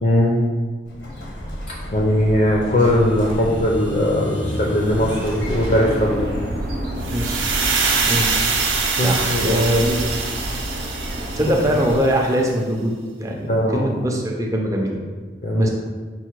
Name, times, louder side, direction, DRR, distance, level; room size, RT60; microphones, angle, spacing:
voice 1, 0.0-0.4 1.9-6.3 9.0-9.6 13.5-14.1 15.4-15.7, left 1 dB, 45° left, -3 dB, 0.5 m, -19 dB
Explosion, 0.9-9.5, equal, 80° left, 0.9 m, -32 dB
sound 1, 4.8-12.0, equal, 60° right, 0.7 m, -30 dB
voice 2, 7.0-7.7 8.0-8.6 9.0-10.1 11.3-15.0 15.5-15.7, equal, 15° right, 0 dB, 0.5 m, -22 dB
sound 2, 7.0-12.1, right 4 dB, 90° right, 0.7 m, -24 dB
5.4 x 2.1 x 4.5 m, 1.4 s
head